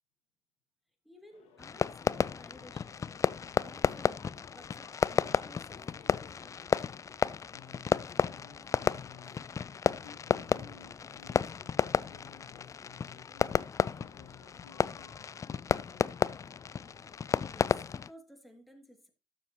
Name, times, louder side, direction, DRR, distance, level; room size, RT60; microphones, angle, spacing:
voice 1, 1.0-3.2 3.6-6.1 17.5-19.1, equal, ahead, 2.7 m, -55 dB
sound 1, 1.3-17.8, left 6 dB, 60° left, 2.6 m, -63 dB
Fireworks, 1.6-18.1, left 6 dB, 25° left, 0.4 m, -32 dB
voice 2, 7.5-9.5 9.9-13.6 13.9-16.2, left 7 dB, 75° left, 1.3 m, -55 dB
12.5 x 7.0 x 3.1 m
hypercardioid pair, 60°, 12 cm